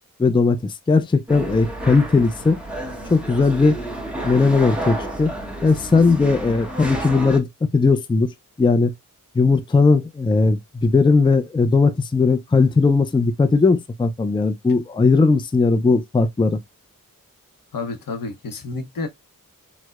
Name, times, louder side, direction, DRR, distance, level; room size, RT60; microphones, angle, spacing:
voice 1, 0.2-2.6 3.1-3.8 4.2-5.3 5.6-7.5 7.7-8.3 8.6-8.9 9.3-16.6, left 4 dB, 15° left, 0.4 m, -18 dB
sound 1, 1.3-7.4, right 1 dB, 5° right, 1.0 m, -30 dB
voice 2, 17.7-19.1, left 3 dB, 80° left, 0.8 m, -30 dB
4.5 x 2.1 x 2.3 m
wide cardioid pair, 75°, 33 cm